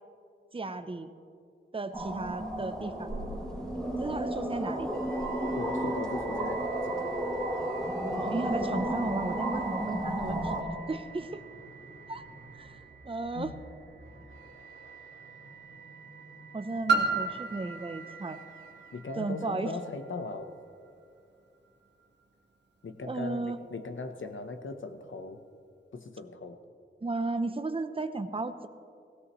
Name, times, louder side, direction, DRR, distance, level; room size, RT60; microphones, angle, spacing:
voice 1, 0.5-1.1 1.7-3.1 4.0-5.0 8.2-10.6 10.9-11.4 12.1-12.2 12.5-12.8 13.0-13.5 16.5-18.4 19.2-19.7 23.1-23.6 27.0-28.7, right 3 dB, 25° right, 9 dB, 0.7 m, -34 dB
sound 1, 1.9-10.6, right 1 dB, 5° left, 2.4 m, -32 dB
sound 2, 4.9-20.1, right 6 dB, 80° right, 2.0 m, -49 dB
voice 2, 5.6-7.2 13.3-13.5 18.9-20.5 22.8-25.4 25.9-26.6, left 3 dB, 75° left, 7 dB, 0.9 m, -39 dB
Piano, 16.9-22.3 23.0-23.1, right 3 dB, 60° right, 1.4 m, -34 dB
18.0 x 16.0 x 3.1 m, 2.4 s
wide cardioid pair, 100°, 20 cm